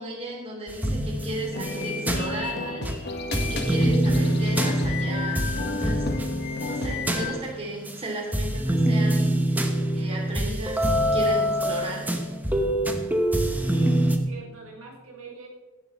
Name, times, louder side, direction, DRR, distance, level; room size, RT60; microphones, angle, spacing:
voice 1, 0.0-6.1 6.6-12.1, right 1 dB, 30° right, -1 dB, 2.7 m, -35 dB
sound 1, 0.7-3.0 3.3-8.0 8.3-14.2, right 1 dB, 10° right, 1.0 m, -25 dB
sound 2, 1.5-7.3, left 2 dB, 55° left, 1.5 m, -31 dB
voice 2, 13.6-15.5, right 4 dB, 85° right, -1 dB, 2.8 m, -44 dB
16.0 x 11.0 x 3.1 m, 1.2 s
head